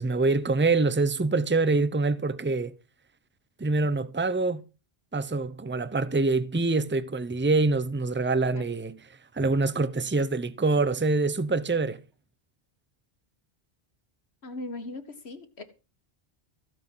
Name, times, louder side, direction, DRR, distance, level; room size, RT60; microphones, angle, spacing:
voice 1, 0.0-2.7 3.6-4.6 5.1-9.0 9.3-12.0, right 3 dB, 10° right, 0.7 m, -25 dB
voice 2, 14.4-15.6, left 2 dB, 85° left, 2.1 m, -38 dB
15.5 x 9.1 x 5.6 m
omnidirectional pair, 1.1 m